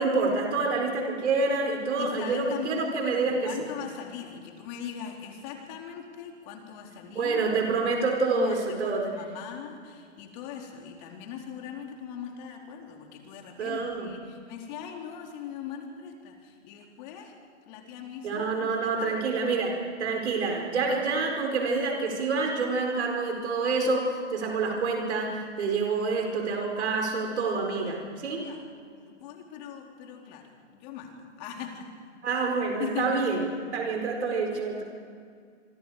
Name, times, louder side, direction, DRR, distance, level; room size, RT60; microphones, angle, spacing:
voice 1, 0.0-3.5 7.1-9.1 13.6-14.1 18.2-19.7 20.0-28.5 32.2-33.4 33.7-34.8, right 4 dB, 70° right, 1 dB, 4.7 m, -27 dB
voice 2, 2.0-7.4 7.9-17.3 17.7-19.3 27.9-28.0 28.3-28.6 29.0-31.9 32.8-33.4 34.5-34.7, left 7 dB, 35° left, 1 dB, 4.0 m, -40 dB
27.5 x 24.5 x 5.0 m, 2.2 s
hypercardioid pair, 145°, 36 cm